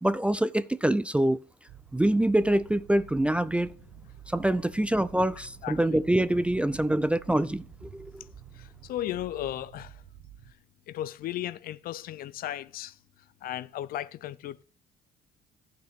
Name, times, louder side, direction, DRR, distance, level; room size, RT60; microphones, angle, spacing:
voice 1, 0.0-1.4 1.9-3.7 4.3-8.3, right 1 dB, 5° right, 0.3 m, -25 dB
sound 1, 1.7-10.5, right 10 dB, 75° right, 1.1 m, -50 dB
voice 2, 5.6-6.0 8.5-10.0 10.9-13.0 13.4-14.6, left 13 dB, 60° left, 0.4 m, -35 dB
14.0 x 5.9 x 3.5 m
cardioid pair, 110°, 17 cm